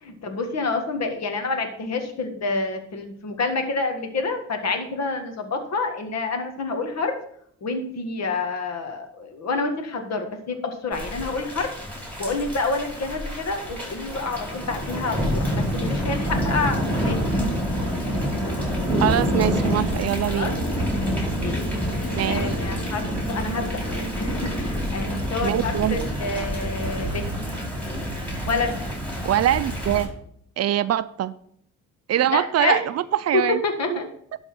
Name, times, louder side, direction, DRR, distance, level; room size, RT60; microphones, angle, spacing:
voice 1, 0.0-7.2 7.6-11.7 12.2-17.2 20.3-20.5 21.4-21.6 22.3-23.7 24.2-27.3 28.5-28.8 32.1-32.8 33.3-34.0, left 3 dB, 60° left, 5 dB, 1.8 m, -28 dB
Thunder / Rain, 10.9-30.0, equal, 5° left, 4.4 m, -27 dB
sound 1, 16.0-24.8, equal, 35° left, 1.6 m, -38 dB
voice 2, 19.0-20.5 22.2-22.4 25.4-26.0 29.2-30.1 30.6-31.3 32.1-33.6 33.9-34.0, right 12 dB, 55° right, 14 dB, 0.5 m, -23 dB
11.5 x 4.0 x 6.0 m, 0.67 s
cardioid pair, 90°, 30 cm